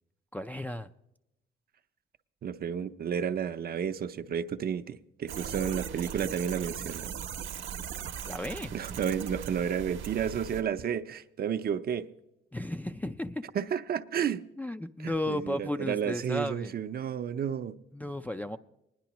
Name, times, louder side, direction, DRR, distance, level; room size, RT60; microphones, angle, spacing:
voice 1, 0.3-0.9 8.3-8.7 12.5-13.4 14.6-16.7 17.9-18.6, left 1 dB, 10° left, 0.3 m, -34 dB
voice 2, 2.4-7.1 8.7-12.1 13.5-14.4 15.0-17.7, right 8 dB, 50° right, 0.6 m, -32 dB
sound 1, 5.3-10.6, right 8 dB, 75° right, 0.8 m, -39 dB
20.0 x 10.5 x 2.9 m
cardioid pair, 90°, 20 cm